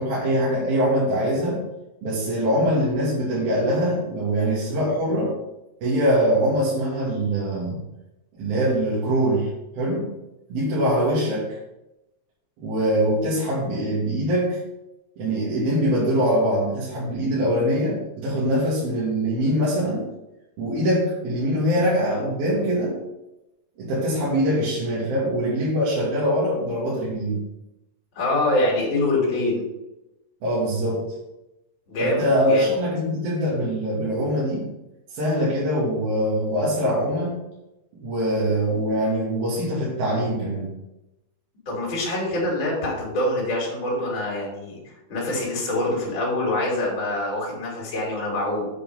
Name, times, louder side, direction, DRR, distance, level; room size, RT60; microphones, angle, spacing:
voice 1, 0.0-1.6 2.0-5.3 5.8-7.8 8.4-9.5 9.8-10.1 10.5-11.4 12.6-14.6 15.2-20.1 20.6-23.0 23.8-27.4 30.4-31.1 32.0-34.7 35.1-37.4 38.0-40.7, equal, 55° right, -7 dB, 4.0 m, -23 dB
voice 2, 28.1-29.7 31.9-32.7 41.6-44.8 45.1-48.7, left 1 dB, 30° left, -4 dB, 3.2 m, -25 dB
8.8 x 5.1 x 5.7 m, 0.93 s
omnidirectional pair, 5.5 m